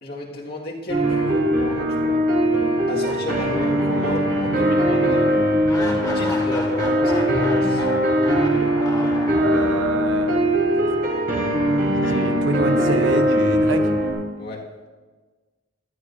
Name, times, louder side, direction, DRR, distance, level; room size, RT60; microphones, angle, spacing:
voice 1, 0.0-2.3 2.9-5.4 5.9-7.9 14.4-14.7, left 1 dB, 55° left, -2 dB, 2.0 m, -32 dB
sound 1, 0.9-14.1, equal, 50° right, 3.6 m, -20 dB
sound 2, 3.1-4.3 4.7-4.8 5.7-10.0, left 1 dB, 20° left, 2.0 m, -33 dB
voice 2, 9.3-10.4 11.9-13.9, right 3 dB, 85° right, 7 dB, 1.1 m, -26 dB
18.5 x 12.5 x 2.7 m, 1.3 s
head